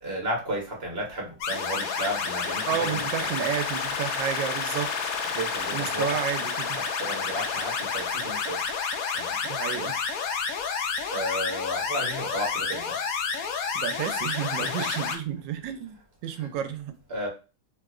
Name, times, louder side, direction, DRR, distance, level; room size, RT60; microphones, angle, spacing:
voice 1, 0.0-3.3 5.3-6.2 6.7-8.6 9.1-9.4 11.1-13.0 14.5-15.2 16.4-16.5 17.1-17.3, equal, 40° right, 1.1 m, -33 dB
sound 1, 1.4-15.2, left 5 dB, 70° left, 0.9 m, -30 dB
voice 2, 2.7-5.1 5.7-6.8 9.4-10.0 13.7-17.0, right 9 dB, 85° right, 1.2 m, -31 dB
3.1 x 3.0 x 2.4 m
omnidirectional pair, 1.9 m